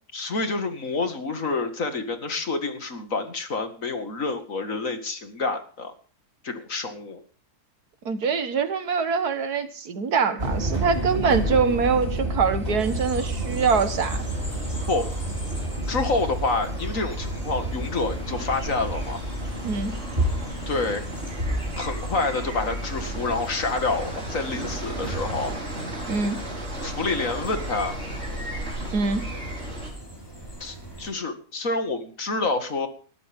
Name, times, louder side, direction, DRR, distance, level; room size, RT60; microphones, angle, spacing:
voice 1, 0.1-5.9 6.4-7.2 14.9-15.1 15.9-19.2 20.7-21.1 21.8-25.5 26.8-28.0 30.6-32.9, left 3 dB, 60° left, 7 dB, 2.5 m, -28 dB
voice 2, 8.1-14.2 19.6-19.9 26.1-26.4 28.9-29.2, right 5 dB, 85° right, 10 dB, 2.1 m, -24 dB
sound 1, 10.4-25.6, right 1 dB, 35° right, 3.8 m, -31 dB
sound 2, 12.8-31.1, right 1 dB, 15° left, 6.3 m, -42 dB
sound 3, 13.5-29.9, equal, 50° right, 5.3 m, -35 dB
20.5 x 13.0 x 3.7 m, 0.40 s
omnidirectional pair, 1.6 m